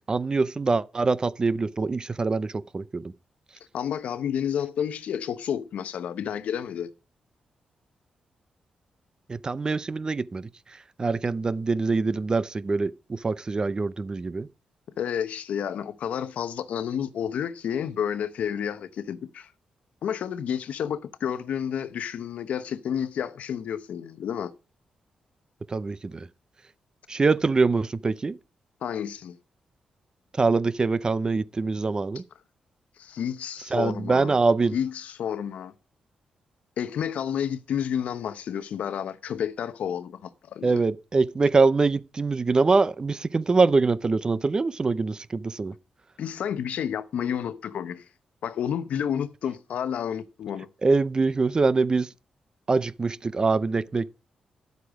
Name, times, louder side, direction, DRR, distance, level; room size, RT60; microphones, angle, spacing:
voice 1, 0.1-3.0 9.3-10.5 11.0-14.5 25.7-26.3 27.1-28.4 30.4-32.2 33.7-34.7 40.6-45.7 50.8-52.1 52.7-54.1, right 4 dB, 35° right, 0.6 m, -24 dB
voice 2, 3.7-6.9 15.0-19.5 20.0-24.5 28.8-29.4 33.0-34.4 34.7-35.7 36.8-40.8 46.2-48.1 48.4-50.7, left 8 dB, 80° left, 0.8 m, -30 dB
10.5 x 8.1 x 5.0 m
cardioid pair, 75°, 2 cm